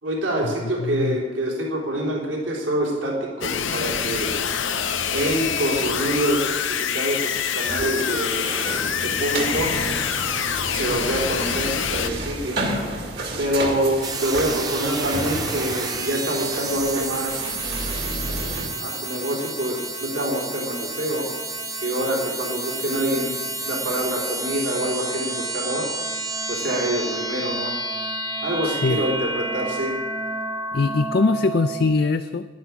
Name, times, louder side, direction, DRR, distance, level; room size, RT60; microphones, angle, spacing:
voice 1, 0.0-4.3 5.1-8.5 9.0-9.7 10.7-12.6 13.4-17.8 18.7-21.3 21.8-23.4 23.6-25.9 26.5-27.8 28.4-30.0, right 1 dB, 70° right, -2 dB, 3.6 m, -26 dB
voice 2, 0.8-1.2 28.6-29.0 30.7-32.5, left 3 dB, 55° left, 9 dB, 0.4 m, -22 dB
sound 1, 3.4-12.1, left 8 dB, 75° left, 0.8 m, -26 dB
sound 2, 3.8-18.7, right 1 dB, 55° right, 2.2 m, -32 dB
sound 3, 14.0-31.9, right 2 dB, 20° right, 1.0 m, -30 dB
11.0 x 10.5 x 8.7 m, 1.4 s
head